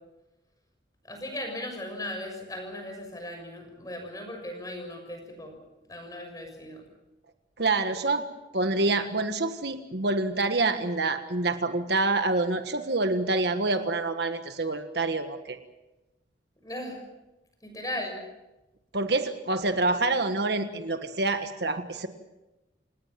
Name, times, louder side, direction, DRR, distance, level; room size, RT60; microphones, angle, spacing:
voice 1, 1.1-5.6 5.9-6.9 16.6-17.0 17.6-18.2, left 1 dB, 20° left, 4 dB, 6.6 m, -37 dB
voice 2, 7.6-8.3 8.5-15.6 18.9-22.1, right 2 dB, 55° right, 7 dB, 1.5 m, -27 dB
28.5 x 19.0 x 7.6 m, 1.0 s
head